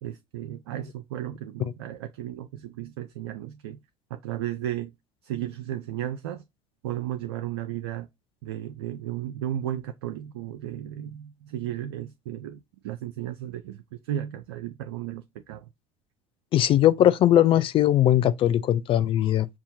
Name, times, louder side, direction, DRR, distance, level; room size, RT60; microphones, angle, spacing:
voice 1, 0.0-3.8 4.1-4.9 5.2-6.4 6.8-8.1 8.4-15.7, right 12 dB, 75° right, 0.4 m, -34 dB
voice 2, 16.5-19.5, left 12 dB, 40° left, 0.4 m, -20 dB
5.6 x 2.3 x 2.7 m
hypercardioid pair, 65°, 14 cm